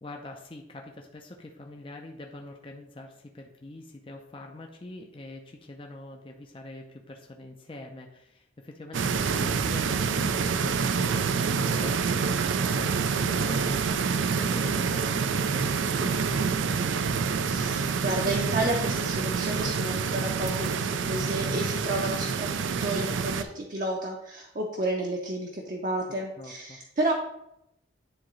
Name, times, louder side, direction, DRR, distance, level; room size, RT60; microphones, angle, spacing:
voice 1, 0.0-17.0 26.4-26.8, left 2 dB, 25° left, 2 dB, 0.5 m, -44 dB
sound 1, 8.9-23.4, right 5 dB, 75° right, 0.4 m, -27 dB
voice 2, 17.4-27.1, right 1 dB, 45° right, -1 dB, 0.7 m, -31 dB
9.7 x 3.7 x 3.1 m, 0.82 s
head